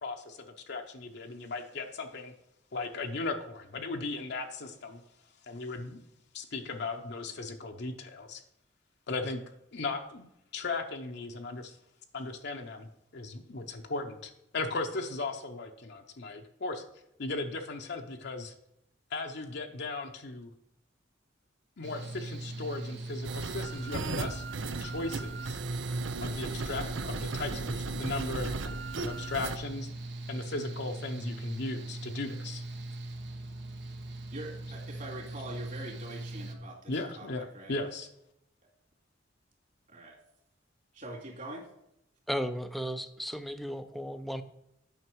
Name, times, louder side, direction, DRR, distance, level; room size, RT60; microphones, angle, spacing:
voice 1, 0.0-2.3 2.7-5.0 5.5-6.0 6.3-8.4 9.1-9.4 9.7-10.2 10.5-11.8 12.1-16.8 17.2-18.5 19.1-20.5 21.8-24.4 24.8-25.6 26.2-29.9 30.3-32.6 36.9-38.1, left 3 dB, 60° left, 3 dB, 0.8 m, -37 dB
Mechanical fan, 21.8-36.6, right 2 dB, 65° right, 1.1 m, -41 dB
sound 1, 23.2-29.6, right 3 dB, 85° right, 0.6 m, -36 dB
voice 2, 34.3-37.3 37.5-37.8 39.9-40.2 40.9-41.6, right 1 dB, 45° right, -1 dB, 2.5 m, -43 dB
voice 3, 42.3-44.4, equal, ahead, 10 dB, 0.5 m, -35 dB
9.4 x 5.8 x 4.6 m, 0.82 s
head